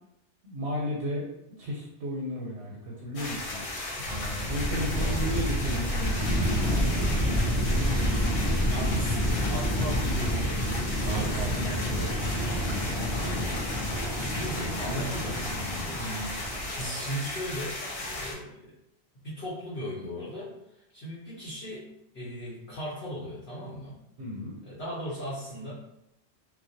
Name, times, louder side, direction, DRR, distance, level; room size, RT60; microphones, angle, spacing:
voice 1, 0.4-1.3 1.6-3.7 4.0-7.9 11.0-11.5 12.3-13.0 15.4-16.4 24.2-24.6, equal, 85° right, -4 dB, 0.9 m, -35 dB
sound 1, 3.1-18.3, left 2 dB, 50° left, 0.4 m, -36 dB
sound 2, 4.0-16.9, equal, 20° right, 0.6 m, -29 dB
voice 2, 4.7-5.5 8.7-12.2 13.1-13.6 14.1-16.0 16.8-18.7 19.2-24.0 24.7-25.7, equal, 70° left, -9 dB, 0.9 m, -38 dB
2.2 x 2.1 x 2.6 m, 0.82 s
omnidirectional pair, 1.1 m